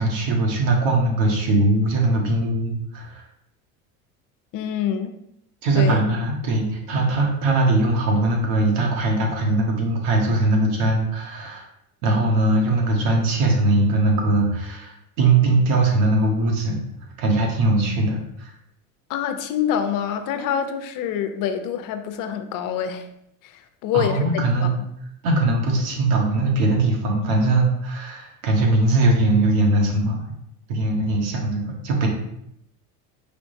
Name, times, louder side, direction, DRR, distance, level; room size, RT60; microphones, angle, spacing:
voice 1, 0.0-3.2 5.6-11.6 12.0-16.8 17.2-18.5 23.9-24.8 25.2-30.3 30.7-32.1, right 2 dB, 75° right, 1 dB, 1.3 m, -20 dB
voice 2, 4.5-5.2 5.7-6.1 19.1-23.1 23.4-24.3 24.6-24.7, left 9 dB, 50° left, 9 dB, 0.6 m, -26 dB
5.0 x 3.4 x 2.6 m, 0.77 s
supercardioid pair, 95°, 43 cm